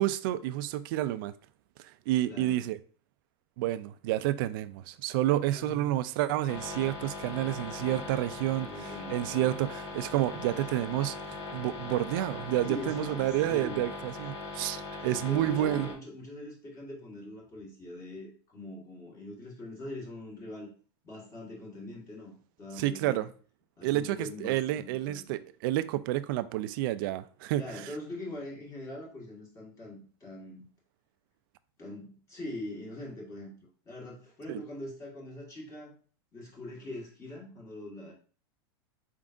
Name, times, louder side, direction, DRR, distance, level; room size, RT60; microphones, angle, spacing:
voice 1, 0.0-1.3 2.1-2.8 3.6-15.9 22.8-23.3 23.8-27.9 34.5-34.6, right 14 dB, 55° right, 0.4 m, -30 dB
voice 2, 2.2-2.6 5.5-5.9 8.5-9.7 12.6-13.9 15.1-20.7 21.0-23.3 23.8-25.4 27.6-30.6 31.8-33.5 33.8-36.0 36.3-38.1, left 1 dB, 25° left, 1.7 m, -42 dB
sound 1, 6.5-15.9, left 3 dB, 80° left, 1.4 m, -40 dB
4.5 x 3.6 x 2.5 m
supercardioid pair, 150°, 14 cm